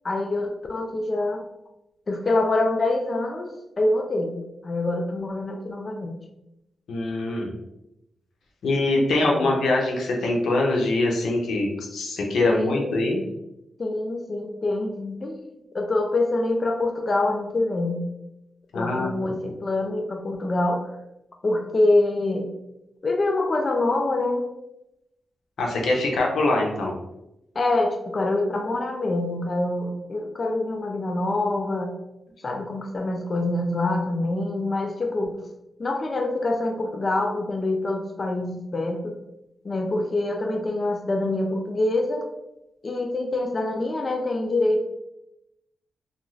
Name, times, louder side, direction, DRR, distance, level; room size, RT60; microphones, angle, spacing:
voice 1, 0.0-1.4 2.1-3.5 3.8-6.2 9.3-9.5 12.4-13.0 13.8-15.4 15.7-18.0 18.7-20.9 21.4-22.5 23.0-24.5 27.6-31.9 32.4-35.3 35.8-39.2 39.6-42.2 42.8-44.8, left 2 dB, 35° left, 2 dB, 0.3 m, -25 dB
voice 2, 6.9-7.5 8.6-13.2 18.7-19.1 19.5-19.6 25.6-26.9, left 2 dB, 90° left, 0 dB, 0.6 m, -23 dB
2.5 x 2.3 x 3.1 m, 0.87 s
wide cardioid pair, 140°, 0 cm